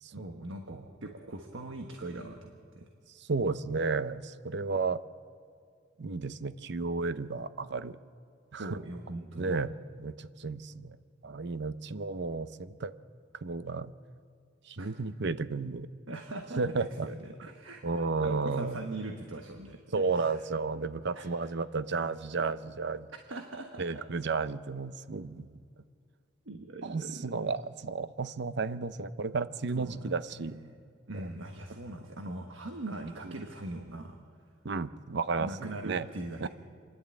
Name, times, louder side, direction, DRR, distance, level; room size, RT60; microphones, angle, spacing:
voice 1, 0.1-2.5 2.8-2.9 8.6-9.5 14.8-14.9 16.1-19.8 20.1-20.4 21.1-21.3 23.3-24.0 26.4-27.4 29.7-30.1 30.4-30.8 31.1-34.2 35.4-36.5, right 2 dB, 85° right, 4 dB, 1.4 m, -41 dB
voice 2, 3.2-5.0 6.0-8.0 8.5-8.8 9.4-9.7 10.0-11.0 11.2-12.9 13.4-13.9 14.7-15.9 16.6-17.1 17.8-18.8 19.9-23.1 23.8-25.6 26.8-30.6 31.1-31.3 33.2-33.3 34.6-36.1 36.4-36.5, right 4 dB, 65° right, 14 dB, 0.7 m, -33 dB
27.0 x 11.5 x 8.6 m, 2.2 s
head